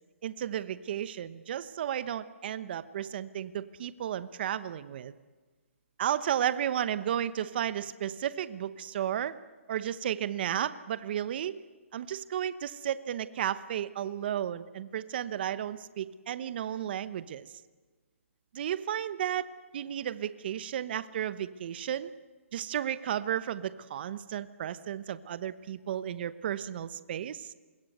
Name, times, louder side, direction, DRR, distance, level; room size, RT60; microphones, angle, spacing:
voice 1, 0.2-5.1 6.0-9.3 9.7-11.6 11.9-17.5 18.5-19.5 19.7-22.1 22.5-27.5, right 10 dB, 45° right, 14 dB, 1.0 m, -33 dB
26.0 x 21.5 x 8.0 m, 1.3 s
hypercardioid pair, 155°, 7 cm